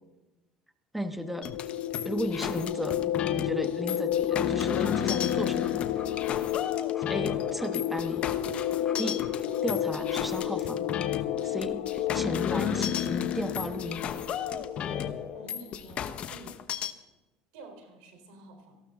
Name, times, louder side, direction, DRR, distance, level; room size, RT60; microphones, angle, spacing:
voice 1, 0.9-1.5 2.0-3.0 3.3-5.8 7.0-8.3 9.0-9.2 9.6-10.8 11.4-14.1, equal, 5° right, 9 dB, 1.3 m, -35 dB
sound 1, 1.2-15.6, left 11 dB, 85° left, 0.8 m, -31 dB
sound 2, 1.4-16.9, left 9 dB, 45° left, 1.0 m, -34 dB
sound 3, 4.1-9.6, left 5 dB, 25° left, 3.2 m, -49 dB
voice 2, 15.3-16.6 17.5-18.8, right 1 dB, 80° right, 4 dB, 4.0 m, -49 dB
18.5 x 14.5 x 3.8 m, 1.1 s
supercardioid pair, 105°, 3 cm